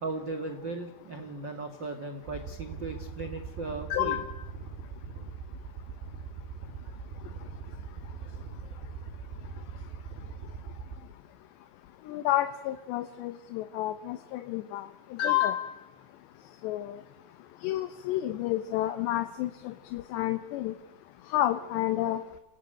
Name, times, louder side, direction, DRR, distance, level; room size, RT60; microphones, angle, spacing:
voice 1, 0.0-4.2 8.3-8.4, right 3 dB, 60° right, 5 dB, 1.2 m, -37 dB
sound 1, 2.2-11.0, right 5 dB, 80° right, 5.6 m, -41 dB
voice 2, 3.9-4.2 12.1-15.7 16.6-17.0 17.6-20.7 21.3-22.2, left 13 dB, 75° left, 10 dB, 3.1 m, -30 dB
29.5 x 17.5 x 9.0 m, 1.1 s
omnidirectional pair, 5.2 m